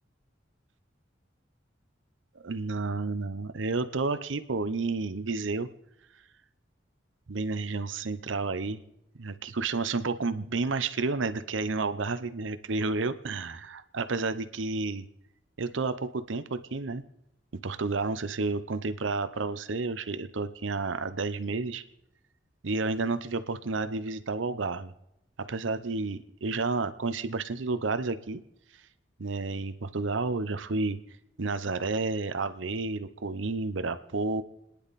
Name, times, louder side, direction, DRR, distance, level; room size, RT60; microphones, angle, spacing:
voice 1, 2.4-5.7 7.3-8.8 9.2-15.1 15.6-17.0 17.6-21.8 22.6-24.9 25.5-28.4 29.2-31.0 31.4-34.4, right 3 dB, 85° right, 12 dB, 0.8 m, -31 dB
30.0 x 10.0 x 4.2 m, 0.84 s
head